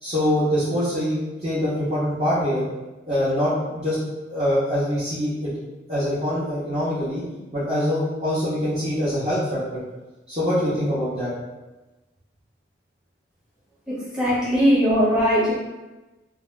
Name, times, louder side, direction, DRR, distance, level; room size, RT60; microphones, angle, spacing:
voice 1, 0.0-2.6 3.1-4.0 4.3-5.5 5.9-7.2 7.5-9.8 10.3-11.3, equal, 35° right, -12 dB, 0.8 m, -24 dB
voice 2, 13.9-15.5, equal, 5° right, -8 dB, 0.8 m, -20 dB
2.7 x 2.2 x 3.3 m, 1.1 s
head